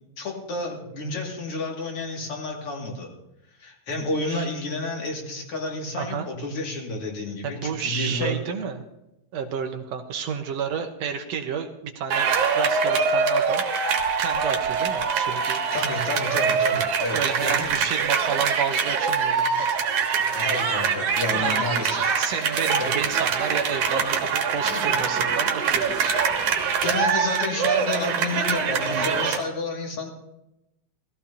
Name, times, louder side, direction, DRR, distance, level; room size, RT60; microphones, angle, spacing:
voice 1, 0.2-3.1 3.6-8.3 15.7-17.7 20.1-23.1 24.6-25.0 26.8-30.1, left 2 dB, 50° left, -1 dB, 3.2 m, -30 dB
voice 2, 6.0-6.3 7.4-8.8 9.3-13.6 14.2-15.6 17.1-19.7 21.4-21.8 22.2-26.1, right 7 dB, 70° right, 6 dB, 2.0 m, -31 dB
sound 1, 12.1-29.4, right 6 dB, 85° right, 2.8 m, -24 dB
17.5 x 15.0 x 2.8 m, 0.88 s
omnidirectional pair, 3.3 m